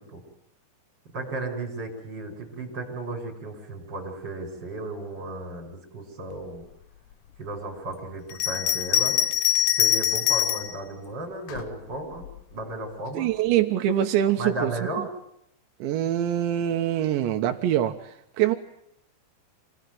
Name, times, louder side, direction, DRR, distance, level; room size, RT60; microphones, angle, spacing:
voice 1, 1.1-6.6 7.4-9.3 9.8-12.2 12.5-13.3 14.4-15.1, right 2 dB, 25° right, 2 dB, 6.2 m, -34 dB
Bell, 8.3-10.8 11.5-12.4, left 10 dB, 65° left, 2.1 m, -24 dB
voice 2, 13.2-14.7 15.8-18.6, right 11 dB, 90° right, 6 dB, 3.6 m, -24 dB
27.5 x 19.0 x 9.4 m, 0.77 s
omnidirectional pair, 5.0 m